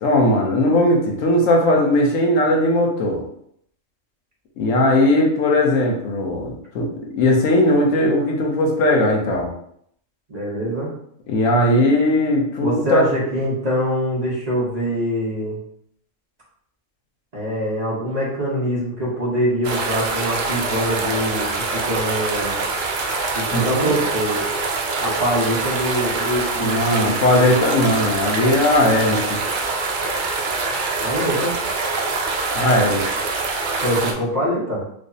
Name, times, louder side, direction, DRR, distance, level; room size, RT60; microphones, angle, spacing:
voice 1, 0.0-3.2 4.6-9.5 11.3-13.0 23.5-23.9 26.6-29.4 32.5-33.1, left 1 dB, 80° left, 0 dB, 1.1 m, -18 dB
voice 2, 10.3-10.9 12.6-15.6 17.3-22.6 23.3-24.4 25.0-27.5 31.0-31.5 33.8-34.8, equal, 35° right, -5 dB, 0.9 m, -24 dB
sound 1, 19.6-34.1, right 3 dB, 70° right, 0.4 m, -24 dB
4.8 x 2.1 x 2.6 m, 0.70 s
omnidirectional pair, 1.4 m